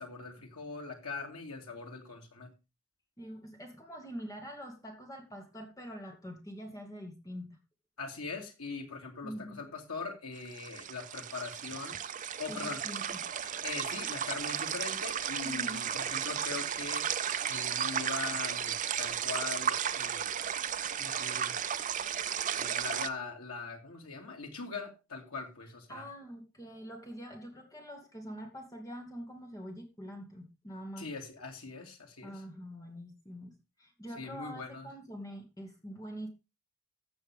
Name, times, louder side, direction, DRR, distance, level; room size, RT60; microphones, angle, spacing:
voice 1, 0.0-2.5 8.0-12.0 12.4-12.8 13.6-17.1 17.5-20.4 20.9-21.5 22.6-26.1 31.0-32.4 34.2-34.9, left 4 dB, 80° left, 2 dB, 2.7 m, -41 dB
voice 2, 3.2-7.5 9.2-9.6 12.5-13.5 15.4-15.8 25.9-31.1 32.2-36.3, equal, 15° left, 3 dB, 2.2 m, -45 dB
sound 1, 10.4-23.1, right 8 dB, 35° right, 0.5 m, -34 dB
15.0 x 6.2 x 3.6 m, 0.26 s
head